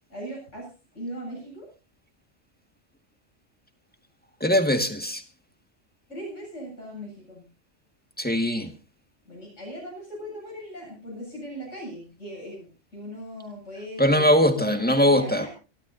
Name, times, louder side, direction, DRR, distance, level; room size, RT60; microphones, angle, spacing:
voice 1, 0.1-0.7 0.9-1.7 6.1-7.4 9.2-15.5, equal, 85° left, -2 dB, 8.6 m, -39 dB
voice 2, 4.4-5.2 8.2-8.7 14.0-15.5, equal, 10° left, 6 dB, 1.7 m, -21 dB
27.5 x 12.5 x 2.8 m, 0.33 s
omnidirectional pair, 1.2 m